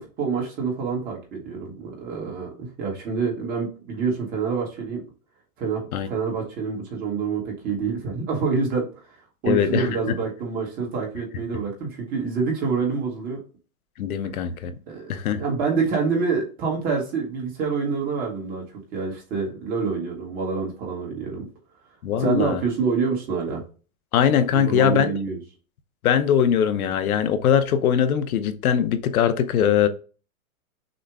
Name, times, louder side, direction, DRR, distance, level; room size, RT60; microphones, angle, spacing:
voice 1, 0.0-5.0 5.6-8.9 9.4-13.4 14.9-21.4 22.2-23.6 24.5-25.4, right 5 dB, 20° right, 1.1 m, -27 dB
voice 2, 9.5-9.9 14.0-14.7 15.1-15.4 22.0-22.6 24.1-25.1 26.0-29.9, left 8 dB, 80° left, 0.9 m, -21 dB
6.3 x 2.1 x 3.5 m
supercardioid pair, 165°, 43 cm